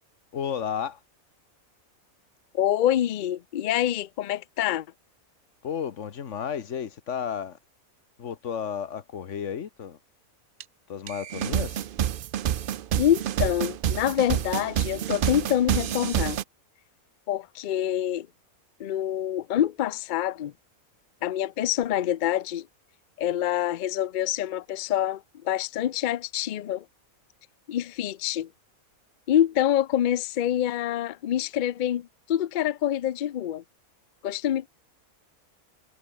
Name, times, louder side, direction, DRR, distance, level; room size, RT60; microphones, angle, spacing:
voice 1, 0.3-1.0 5.6-7.6 8.2-10.0 10.9-11.9, left 8 dB, 55° left, 1.4 m, -32 dB
voice 2, 2.5-4.9 13.0-16.4 17.3-18.3 18.8-20.5 21.2-22.7 23.2-26.8 27.7-28.5 29.3-33.6 34.2-34.7, left 11 dB, 90° left, 0.4 m, -26 dB
sound 1, 10.6-10.7 11.1-16.4, right 10 dB, 65° right, 0.5 m, -28 dB
omnidirectional pair, 1.5 m